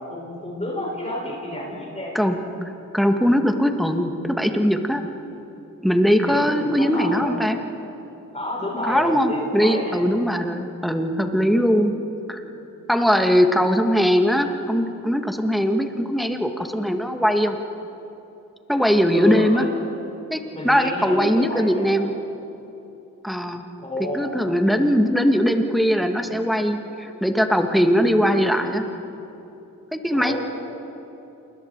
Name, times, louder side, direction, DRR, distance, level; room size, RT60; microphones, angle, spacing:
voice 1, 0.0-2.1 6.2-7.4 8.3-10.0 19.1-19.7 20.5-21.9 23.8-24.3 30.1-30.4, left 1 dB, 20° left, -4 dB, 6.6 m, -30 dB
voice 2, 2.7-5.0 5.8-7.6 8.8-11.9 12.3-12.4 12.9-17.6 18.7-19.7 20.3-22.1 23.2-23.6 24.1-28.8 29.9-30.4, equal, ahead, 4 dB, 2.0 m, -20 dB
28.5 x 21.0 x 4.7 m, 3.0 s
cardioid pair, 60°, 32 cm